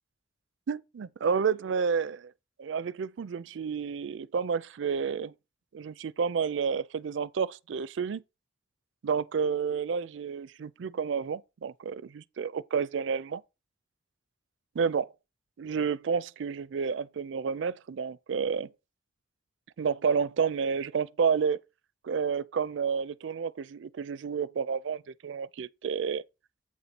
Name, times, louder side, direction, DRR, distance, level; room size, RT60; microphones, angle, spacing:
voice 1, 0.7-2.3 2.6-5.3 5.7-8.2 9.0-13.4 14.8-15.1 15.6-18.7 19.8-21.6 22.0-26.2, right 6 dB, 75° right, 0.4 m, -30 dB
8.4 x 4.1 x 5.8 m
head